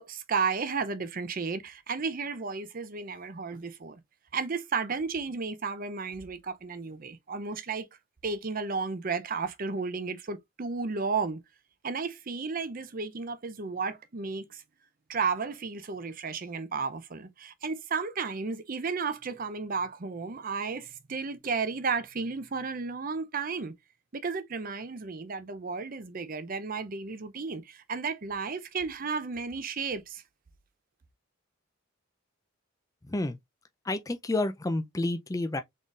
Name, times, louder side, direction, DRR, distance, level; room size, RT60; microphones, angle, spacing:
voice 1, 0.0-4.0 4.3-7.9 8.2-11.4 11.8-14.6 15.1-23.7 24.1-30.2, right 5 dB, 40° right, 0.6 m, -33 dB
voice 2, 33.0-33.4 33.8-35.6, left 2 dB, 15° left, 0.4 m, -30 dB
3.9 x 3.7 x 2.4 m
head